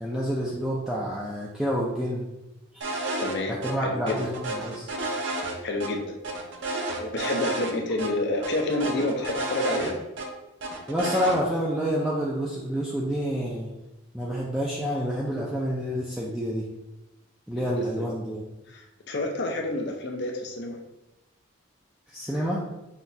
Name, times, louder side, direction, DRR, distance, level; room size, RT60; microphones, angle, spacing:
voice 1, 0.0-2.3 2.7-2.9 3.5-4.9 10.9-13.7 14.1-16.7 17.5-18.4 22.1-22.6, equal, ahead, -6 dB, 0.3 m, -28 dB
sound 1, 2.8-3.4 3.6-3.7 4.1-5.9 6.2-7.7 8.0-8.1 8.4-10.3 10.6-11.4, right 2 dB, 55° right, 0.5 m, -31 dB
voice 2, 3.2-4.3 5.6-6.1 7.0-10.0 17.6-18.0 18.7-20.8, left 2 dB, 50° left, 2 dB, 0.5 m, -29 dB
5.7 x 2.3 x 2.7 m, 0.96 s
head